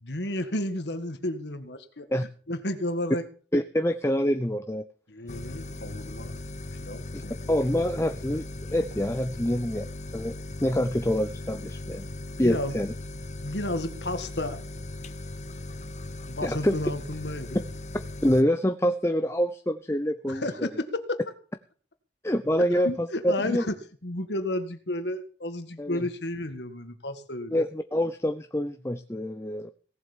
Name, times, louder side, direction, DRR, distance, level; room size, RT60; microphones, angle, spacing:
voice 1, 0.0-2.1 2.5-3.2 5.1-6.4 6.8-7.3 12.4-12.8 13.4-14.6 16.3-17.6 20.3-21.2 22.6-23.8 24.0-27.6, left 1 dB, 75° left, 9 dB, 1.8 m, -32 dB
voice 2, 3.5-4.8 7.1-7.2 7.5-9.8 10.1-12.0 12.4-12.9 16.4-16.8 18.2-20.7 22.2-23.6 25.8-26.0 27.5-29.7, equal, 15° left, 9 dB, 0.6 m, -26 dB
sound 1, 5.3-18.4, left 2 dB, 40° left, 1.0 m, -38 dB
18.0 x 7.8 x 7.3 m, 0.41 s
head